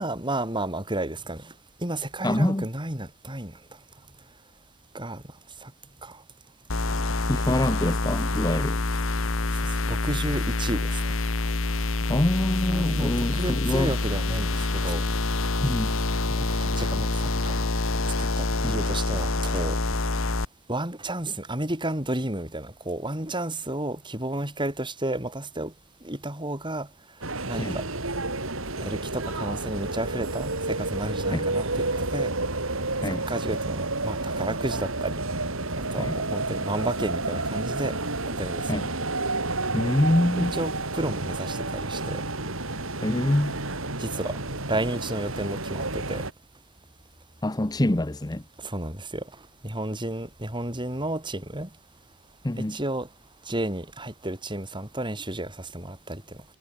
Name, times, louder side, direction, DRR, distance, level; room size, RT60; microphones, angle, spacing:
voice 1, 0.0-1.5 1.8-3.5 4.9-5.2 5.6-5.7 6.0-6.2 9.6-11.1 12.7-15.0 16.4-17.6 18.4-19.8 20.7-25.7 26.0-26.9 27.5-27.9 28.8-32.3 33.1-35.1 35.8-38.0 38.3-38.7 40.4-42.2 44.0-44.4 44.7-46.2 48.6-49.2 49.6-51.7 52.6-53.1 53.5-56.2, right 1 dB, 20° right, 5.6 m, -32 dB
voice 2, 2.2-2.6 7.3-8.8 12.1-13.9 15.6-15.9 18.6-18.7 27.6-27.8 31.3-31.4 33.0-33.2 36.0-36.1 38.7-38.9 39.7-40.5 43.0-43.6 47.4-48.4 52.4-52.8, left 1 dB, 20° left, 0.8 m, -25 dB
sound 1, 6.7-20.4, left 2 dB, 60° left, 1.8 m, -26 dB
sound 2, 27.2-46.3, right 2 dB, 65° right, 4.8 m, -30 dB
head